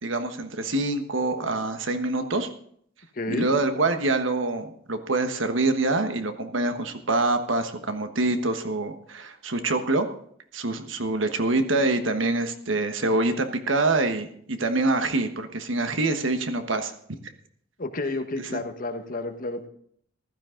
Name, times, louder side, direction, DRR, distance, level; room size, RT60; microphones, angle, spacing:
voice 1, 0.0-2.5 3.3-10.1 10.5-16.9 18.4-18.6, right 2 dB, 85° right, 8 dB, 1.4 m, -25 dB
voice 2, 3.1-3.5 17.8-19.7, left 2 dB, 45° left, 7 dB, 1.3 m, -30 dB
14.5 x 13.0 x 3.8 m, 0.64 s
head